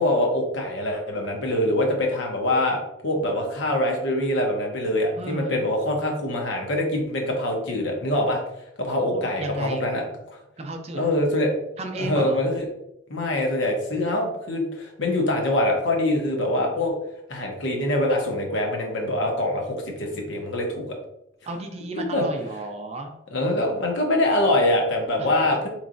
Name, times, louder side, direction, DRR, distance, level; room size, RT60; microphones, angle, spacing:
voice 1, 0.0-8.4 8.8-10.0 10.3-10.4 11.0-11.5 12.0-12.7 13.1-16.9 17.3-20.9 22.1-22.2 23.3-25.7, left 1 dB, 70° left, 1 dB, 0.8 m, -24 dB
voice 2, 5.2-5.7 9.0-9.9 10.6-11.0 11.8-12.4 20.1-20.4 21.5-23.2 25.2-25.6, right 2 dB, 30° right, 4 dB, 0.4 m, -34 dB
3.9 x 3.1 x 2.5 m, 0.81 s
head